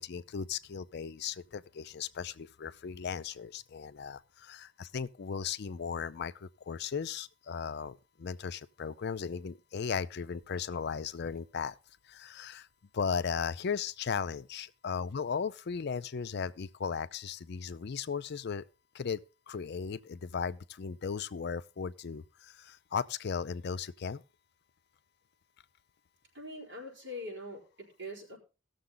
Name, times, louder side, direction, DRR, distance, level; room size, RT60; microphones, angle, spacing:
voice 1, 0.0-11.7 12.1-12.7 12.9-18.6 18.9-19.2 19.5-24.2, left 6 dB, 55° left, 0.5 m, -36 dB
voice 2, 26.3-28.4, left 1 dB, 65° right, 4.3 m, -43 dB
17.0 x 6.8 x 3.9 m
head